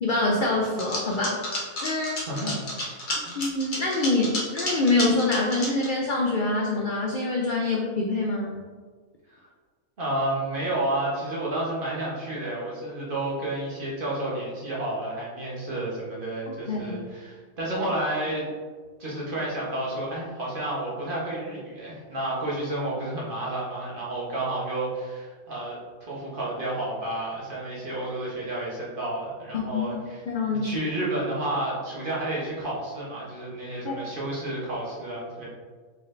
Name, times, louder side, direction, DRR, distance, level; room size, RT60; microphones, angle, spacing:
voice 1, 0.0-1.4 1.8-2.2 3.4-8.6 16.7-17.0 29.5-29.9 30.3-30.7 33.8-33.9, left 2 dB, 85° left, -1 dB, 0.4 m, -25 dB
sound 1, 0.6-5.9, left 1 dB, 40° left, 0.9 m, -31 dB
voice 2, 2.1-2.6 2.8-3.4 9.3-9.5 10.0-18.5 19.0-30.2 30.5-35.5, right 1 dB, 40° right, -6 dB, 1.1 m, -31 dB
4.3 x 4.1 x 2.5 m, 1.5 s
omnidirectional pair, 1.5 m